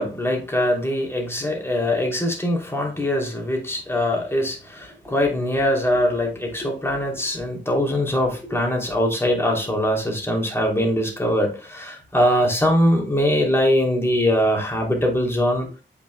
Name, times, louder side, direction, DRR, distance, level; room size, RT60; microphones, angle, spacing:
voice 1, 0.0-15.7, left 1 dB, 10° left, 0 dB, 2.9 m, -22 dB
7.9 x 6.0 x 2.3 m, 0.34 s
wide cardioid pair, 85°, 19 cm